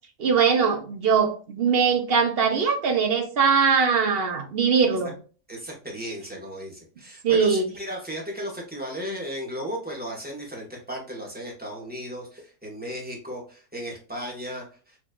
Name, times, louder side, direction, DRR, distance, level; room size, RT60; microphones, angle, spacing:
voice 1, 0.2-5.1 7.2-7.7, right 6 dB, 50° right, 0.8 m, -21 dB
voice 2, 5.5-15.0, equal, 5° right, 1.4 m, -35 dB
5.0 x 3.1 x 2.4 m
omnidirectional pair, 1.5 m